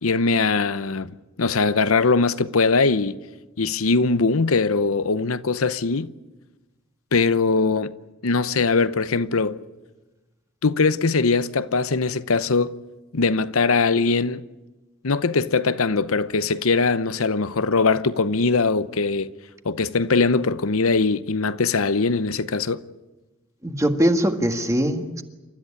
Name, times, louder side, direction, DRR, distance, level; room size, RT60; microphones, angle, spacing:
voice 1, 0.0-1.1 1.4-3.2 3.6-6.1 7.1-7.9 8.2-9.6 10.6-12.8 13.1-14.4 15.0-19.3 19.6-22.8, left 4 dB, 75° left, 0.8 m, -21 dB
voice 2, 23.6-25.2, equal, 15° right, 1.7 m, -21 dB
29.0 x 13.5 x 9.8 m
head